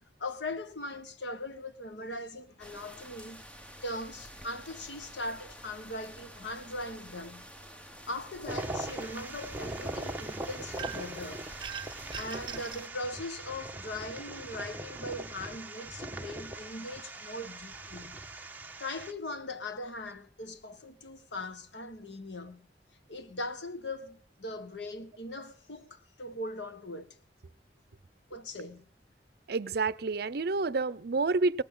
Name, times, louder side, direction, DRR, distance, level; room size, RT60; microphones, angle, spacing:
voice 1, 0.0-3.4 3.8-7.5 8.1-11.5 12.1-18.2 18.8-22.7 23.1-27.2 28.3-28.9, left 2 dB, 85° left, 1.4 m, -40 dB
sound 1, 2.6-12.9, equal, 5° left, 1.2 m, -49 dB
sound 2, 8.5-19.1, right 2 dB, 10° right, 1.2 m, -41 dB
sound 3, 10.8-11.2 11.6-12.9, right 8 dB, 25° right, 0.9 m, -41 dB
voice 2, 29.5-31.6, right 3 dB, 60° right, 0.6 m, -29 dB
18.0 x 15.0 x 3.8 m
head